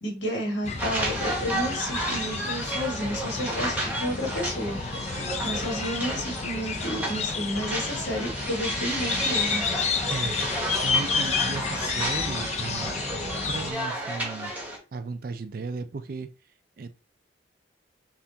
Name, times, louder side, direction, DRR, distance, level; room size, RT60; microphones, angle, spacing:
voice 1, 0.0-4.8 5.4-9.6, equal, 70° left, 1.6 m, -31 dB
sound 1, 0.6-13.7, left 5 dB, 35° left, 0.4 m, -31 dB
sound 2, 0.8-14.8, right 1 dB, 10° right, 0.9 m, -32 dB
voice 2, 10.1-13.0 13.5-14.5 14.9-16.3 16.8-17.0, right 4 dB, 50° right, 0.3 m, -36 dB
5.4 x 2.4 x 2.8 m
head